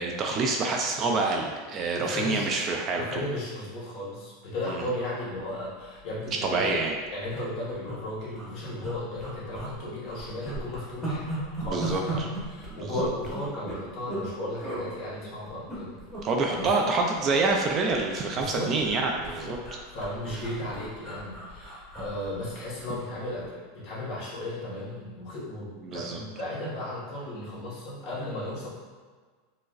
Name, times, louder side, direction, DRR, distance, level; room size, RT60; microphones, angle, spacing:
voice 1, 0.0-3.2 4.7-4.8 6.4-7.0 11.6-12.3 12.7-12.9 16.2-19.6 25.8-26.2, right 3 dB, 30° right, 1 dB, 0.4 m, -27 dB
voice 2, 1.9-2.5 2.9-6.8 7.1-11.3 11.6-16.0 16.6-16.7 18.3-18.7 19.2-19.5 19.9-23.6 23.8-25.7 25.9-28.7, left 1 dB, 45° left, -7 dB, 1.4 m, -35 dB
sound 1, 5.8-6.0 6.3-6.4 6.6-6.8 7.3-8.0 8.3-8.5 8.8-9.7 10.1-14.3 14.6-14.8 15.5-16.2 16.5-16.7 17.0-18.1 18.4-22.9 23.3-23.5, right 2 dB, 5° right, 1.1 m, -36 dB
4.6 x 2.0 x 2.5 m, 1.5 s
supercardioid pair, 135°, 0 cm